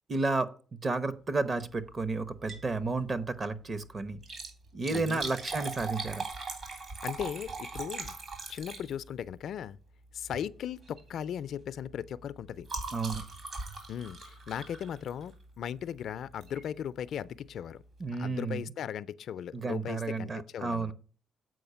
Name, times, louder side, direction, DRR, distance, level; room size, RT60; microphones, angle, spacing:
voice 1, 0.1-4.2 4.7-6.3 12.9-13.2 18.0-18.6 19.5-20.9, right 3 dB, 35° right, 0.9 m, -32 dB
Liquid, 2.3-2.7 3.1-3.2 4.1-9.2 10.2-10.5 10.8-11.1 11.4-15.5 16.4-16.7 17.2-17.3 17.5-17.6, right 3 dB, 55° right, 3.3 m, -40 dB
voice 2, 4.9-5.2 7.0-8.2 8.5-9.8 10.1-12.7 13.9-17.8 18.2-20.9, left 9 dB, 70° left, 0.4 m, -37 dB
7.8 x 4.9 x 6.8 m
cardioid pair, 90°, 0 cm